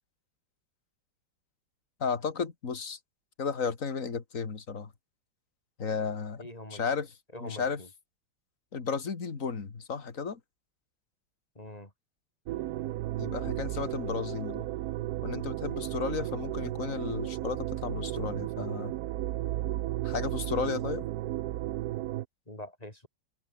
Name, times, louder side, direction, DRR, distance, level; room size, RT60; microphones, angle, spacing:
voice 1, 2.0-3.0 3.4-4.9 5.8-7.1 7.4-7.8 8.7-10.4 13.2-14.6 15.2-18.9 20.0-21.0, left 5 dB, 40° left, 2.5 m, -33 dB
voice 2, 6.4-6.9 7.3-7.9 11.6-11.9 22.5-23.1, left 1 dB, 20° left, 5.5 m, -44 dB
sound 1, 12.5-22.2, right 14 dB, 75° right, 0.8 m, -34 dB
omnidirectional pair, 2.2 m